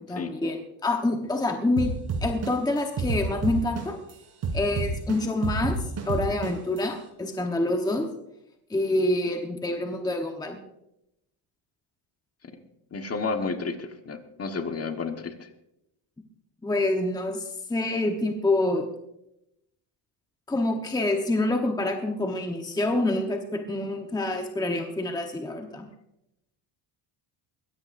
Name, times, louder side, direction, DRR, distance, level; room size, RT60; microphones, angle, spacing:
voice 1, 0.0-1.9 2.2-4.0 4.5-5.8 6.1-8.1 8.7-10.6 16.6-18.9 20.5-25.9, left 2 dB, 10° left, 3 dB, 1.1 m, -27 dB
sound 1, 1.8-4.1 4.4-6.8, right 4 dB, 50° right, 3.4 m, -29 dB
voice 2, 12.9-15.5, left 4 dB, 30° left, 6 dB, 1.4 m, -31 dB
21.5 x 16.5 x 2.6 m, 0.84 s
cardioid pair, 140°, 48 cm